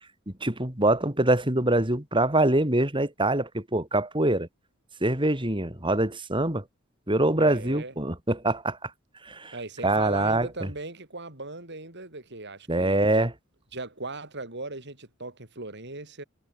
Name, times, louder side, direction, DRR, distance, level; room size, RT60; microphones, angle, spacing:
voice 1, 0.3-4.5 5.0-6.6 7.1-8.9 9.2-9.5 9.8-10.7 12.7-13.3, right 1 dB, 25° right, 4.4 m, -24 dB
voice 2, 7.4-7.9 9.5-13.3 13.7-16.2, right 2 dB, 55° right, 6.3 m, -38 dB
head